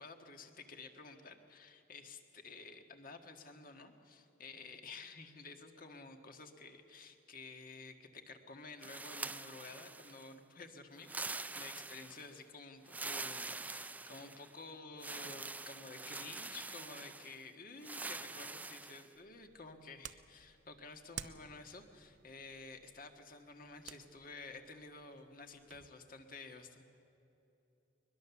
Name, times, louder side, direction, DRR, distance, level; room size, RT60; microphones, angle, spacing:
voice 1, 0.0-26.9, left 3 dB, 50° left, 5 dB, 1.7 m, -52 dB
sound 1, 8.8-10.3 11.0-12.3 12.9-14.5 15.0-17.4 17.8-19.1, right 3 dB, 10° right, 0.4 m, -45 dB
sound 2, 19.1-25.9, right 9 dB, 85° right, 0.8 m, -54 dB
22.5 x 21.0 x 7.1 m, 3.0 s
head